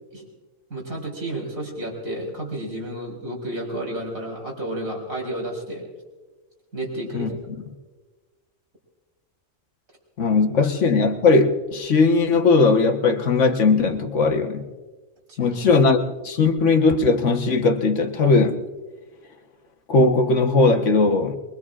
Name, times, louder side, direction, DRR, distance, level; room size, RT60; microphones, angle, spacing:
voice 1, 0.7-5.9 6.7-7.4 10.6-10.7 15.3-15.6, right 1 dB, 90° right, 4.2 m, -31 dB
voice 2, 10.2-14.7 15.4-16.0 16.2-18.6 19.9-21.4, left 3 dB, 65° left, 1.5 m, -18 dB
23.5 x 23.0 x 2.4 m
omnidirectional pair, 1.4 m